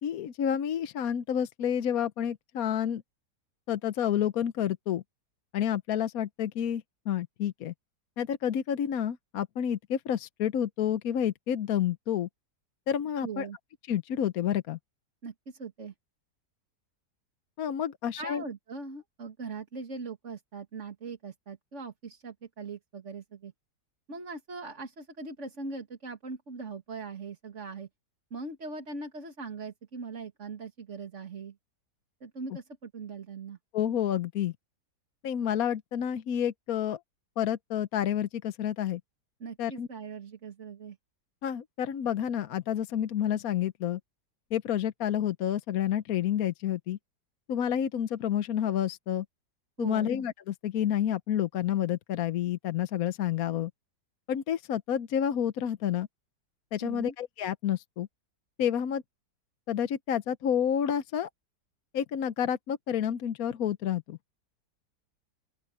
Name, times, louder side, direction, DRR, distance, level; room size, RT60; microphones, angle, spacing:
voice 1, 0.0-3.0 3.7-5.0 5.5-7.7 8.2-12.3 12.9-13.5 13.9-14.8 17.6-18.4 33.7-34.5 35.2-37.0 37.4-39.0 39.6-39.9 41.4-44.0 44.5-47.0 47.5-49.2 49.8-53.7 54.3-56.1 56.7-58.1 58.6-59.0 59.7-61.3 61.9-64.2, left 9 dB, 65° left, 1.2 m, -29 dB
voice 2, 13.2-13.6 15.2-15.9 18.2-23.5 24.1-27.9 28.3-31.6 32.2-33.6 39.4-41.0 49.8-50.1 56.8-57.1, right 4 dB, 45° right, 2.3 m, -41 dB
open air
omnidirectional pair, 1.8 m